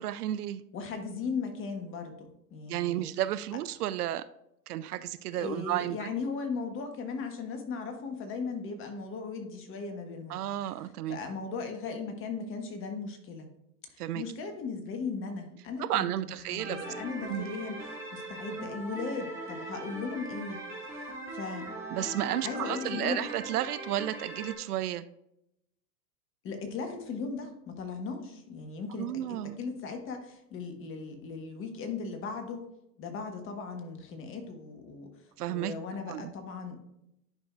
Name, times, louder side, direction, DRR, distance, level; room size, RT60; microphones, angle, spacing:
voice 1, 0.0-0.6 2.7-4.3 4.7-6.1 10.3-11.2 14.0-14.2 15.8-16.9 17.2-17.5 21.9-25.1 28.9-29.6 35.4-35.7 36.1-36.3, right 13 dB, 70° right, 0.5 m, -32 dB
voice 2, 0.7-3.1 5.3-10.4 11.1-13.5 13.9-20.6 20.9-21.7 22.4-23.2 26.4-32.7 33.0-35.1 35.5-36.8, left 4 dB, 25° left, 1.2 m, -37 dB
sound 1, 16.6-24.6, right 2 dB, 5° right, 2.3 m, -40 dB
10.5 x 5.3 x 2.4 m
hypercardioid pair, 110°, 47 cm